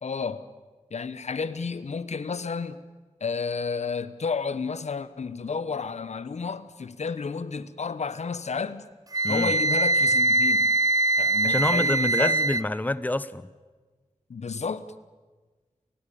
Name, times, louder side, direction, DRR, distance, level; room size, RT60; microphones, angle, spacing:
voice 1, 0.0-0.5 0.9-2.8 3.2-8.9 9.3-10.7 11.2-12.4 14.3-14.9, left 5 dB, 70° left, 1.1 m, -31 dB
Wind instrument woodwind instrument, 9.1-12.6, right 2 dB, 30° right, 0.7 m, -22 dB
voice 2, 11.4-13.5, left 2 dB, 15° left, 0.8 m, -27 dB
29.0 x 16.5 x 8.7 m
wide cardioid pair, 65°, 12 cm